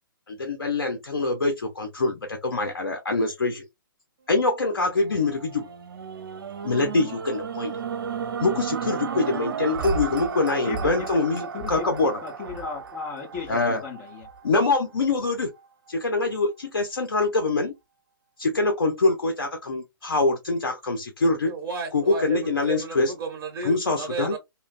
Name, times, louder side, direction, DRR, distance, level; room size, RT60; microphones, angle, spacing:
voice 1, 0.3-3.7 4.3-5.7 6.6-7.8 8.4-12.2 13.5-13.8 14.4-15.5 15.9-17.7 18.4-21.5 21.9-23.1 23.6-24.4, left 3 dB, 85° left, 0.7 m, -24 dB
sound 1, 4.7-15.0 15.6-15.7, right 6 dB, 70° right, 0.6 m, -34 dB
voice 2, 10.6-14.3, left 5 dB, 30° left, 1.0 m, -36 dB
voice 3, 21.5-24.4, right 4 dB, 20° right, 1.0 m, -33 dB
3.0 x 2.2 x 2.4 m
hypercardioid pair, 135°, 12 cm